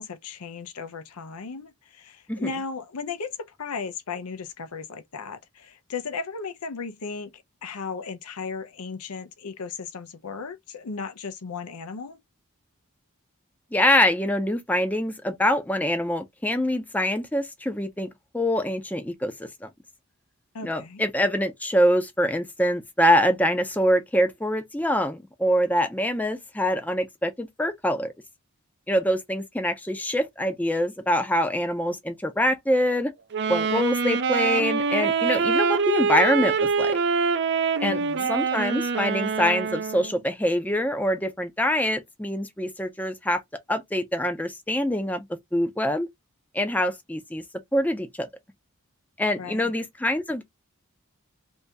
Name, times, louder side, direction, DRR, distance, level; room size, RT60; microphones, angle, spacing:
voice 1, 0.0-12.2 20.5-21.0 37.8-38.3 49.4-49.7, left 5 dB, 85° left, 0.6 m, -36 dB
voice 2, 13.7-18.1 18.3-19.3 19.6-19.7 20.6-28.1 28.9-33.1 33.5-37.0 37.8-38.0 38.3-43.4 43.7-45.3 45.5-46.1 46.5-47.4 47.7-48.3 49.2-50.4, equal, 5° left, 0.5 m, -24 dB
Wind instrument woodwind instrument, 33.3-40.2, right 5 dB, 50° right, 0.4 m, -25 dB
2.8 x 2.7 x 3.4 m
head